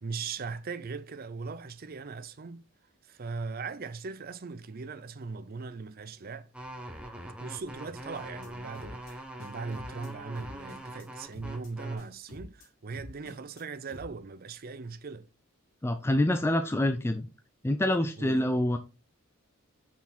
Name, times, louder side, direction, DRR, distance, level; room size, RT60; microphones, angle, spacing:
voice 1, 0.0-2.7 3.0-6.5 7.4-15.3 18.2-18.4, right 4 dB, 45° right, 0.5 m, -39 dB
sound 1, 6.5-12.0, right 1 dB, 5° right, 1.0 m, -43 dB
sound 2, 8.1-8.5 8.7-9.1 9.4-10.1 10.4-11.1 11.3-11.7 12.0-12.7 12.9-13.6 13.9-14.1, left 1 dB, 70° left, 3.0 m, -48 dB
voice 2, 15.8-17.3 17.6-18.8, left 1 dB, 10° left, 0.4 m, -26 dB
5.8 x 4.8 x 4.2 m
head